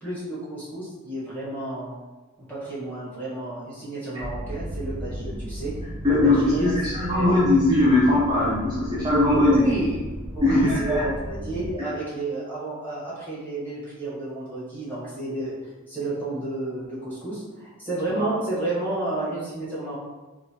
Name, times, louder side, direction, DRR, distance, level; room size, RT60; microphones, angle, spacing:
voice 1, 0.0-1.9 2.4-5.7 6.1-7.4 9.3-10.1 10.3-15.5 15.9-19.9, right 2 dB, 10° left, -9 dB, 1.0 m, -31 dB
sound 1, 4.2-11.7, equal, 90° left, 0.8 m, -35 dB
voice 2, 6.0-9.6 10.4-11.0 18.2-18.3, left 2 dB, 20° right, -9 dB, 0.5 m, -20 dB
2.9 x 2.5 x 2.7 m, 1.2 s
head